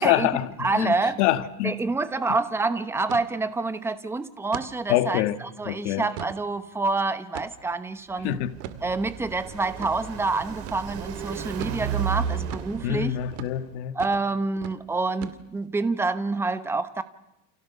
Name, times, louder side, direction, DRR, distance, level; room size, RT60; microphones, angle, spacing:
voice 1, 0.0-1.7 4.9-5.4 5.7-6.1 8.2-8.6 12.8-14.0, left 14 dB, 60° left, 1.8 m, -25 dB
voice 2, 0.6-1.2 1.6-8.4 8.8-13.1 13.9-17.0, right 3 dB, 5° right, 0.9 m, -27 dB
sound 1, 1.1-1.4 1.7-1.8 2.1-2.4 3.1-3.3 3.8-3.9 4.5-4.7 5.2-5.3 5.9-6.4 7.3-7.7 8.6-8.8 9.8-9.9 10.7-10.9 11.6-11.8 12.5-12.7 13.3-13.5 14.0-14.3 14.6-14.8 15.2-15.7, right 12 dB, 55° right, 2.2 m, -39 dB
Car passing by, 8.1-13.7, right 8 dB, 40° right, 3.8 m, -33 dB
29.5 x 29.0 x 7.0 m
cardioid pair, 180°, 39 cm